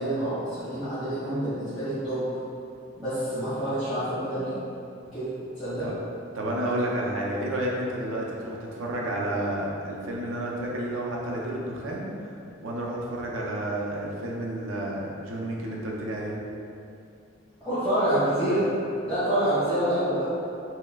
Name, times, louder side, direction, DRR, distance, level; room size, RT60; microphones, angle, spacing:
voice 1, 0.0-2.2 3.0-4.5 5.0-5.3 5.6-5.9 17.6-18.6 19.0-20.3, right 1 dB, ahead, -20 dB, 1.4 m, -27 dB
voice 2, 6.3-12.1 12.6-16.3, right 1 dB, 75° right, -3 dB, 0.5 m, -30 dB
4.4 x 2.1 x 2.3 m, 2.6 s
head